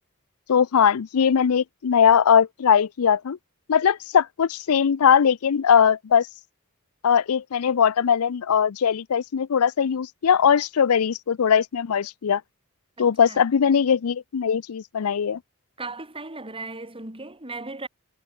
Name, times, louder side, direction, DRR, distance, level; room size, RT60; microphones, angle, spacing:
voice 1, 0.5-3.4 3.7-6.3 7.0-12.4 13.0-15.4, left 7 dB, 75° left, 0.5 m, -20 dB
voice 2, 13.0-13.4 15.8-17.9, right 3 dB, 25° right, 7.5 m, -37 dB
head